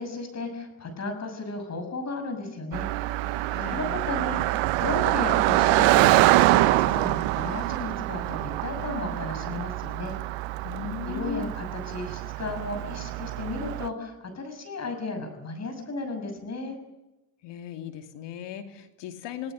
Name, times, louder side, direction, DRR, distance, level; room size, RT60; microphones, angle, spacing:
voice 1, 0.0-2.9 3.3-6.1 6.3-10.1 11.0-16.7, left 3 dB, 35° left, 6 dB, 6.7 m, -34 dB
Car passing by, 2.7-13.9, right 17 dB, 70° right, 1.2 m, -25 dB
voice 2, 3.5-3.8 10.6-11.5 17.4-19.5, left 8 dB, 65° left, 6 dB, 2.8 m, -37 dB
28.5 x 18.0 x 6.5 m, 0.98 s
supercardioid pair, 80°, 46 cm